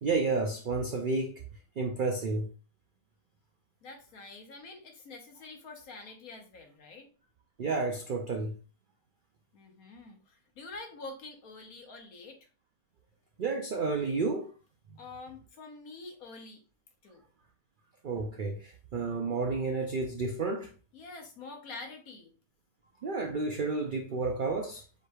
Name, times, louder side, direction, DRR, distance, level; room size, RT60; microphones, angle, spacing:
voice 1, 0.0-1.4 1.8-2.5 7.6-8.6 13.4-14.5 18.0-20.7 23.0-24.8, right 3 dB, 75° right, 0.4 m, -31 dB
voice 2, 3.8-7.1 9.5-12.5 15.0-16.6 17.0-17.2 20.9-22.3, left 3 dB, 75° left, 1.5 m, -46 dB
7.1 x 3.2 x 2.3 m
omnidirectional pair, 1.6 m